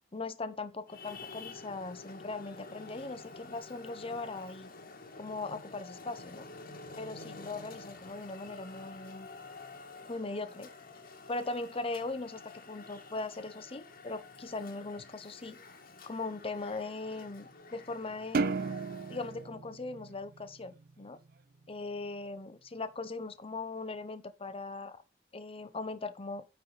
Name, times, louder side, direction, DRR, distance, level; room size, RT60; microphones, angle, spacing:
voice 1, 0.1-4.7 5.2-6.5 7.0-9.3 10.1-10.7 11.3-15.6 16.1-18.6 19.1-21.2 21.7-25.0 25.3-26.5, left 3 dB, 30° left, 0.8 m, -39 dB
Traffic noise roadway noise, 0.9-19.5, left 3 dB, 55° left, 1.5 m, -50 dB
sound 1, 18.3-20.9, right 4 dB, 55° right, 0.5 m, -34 dB
9.5 x 4.2 x 4.9 m
head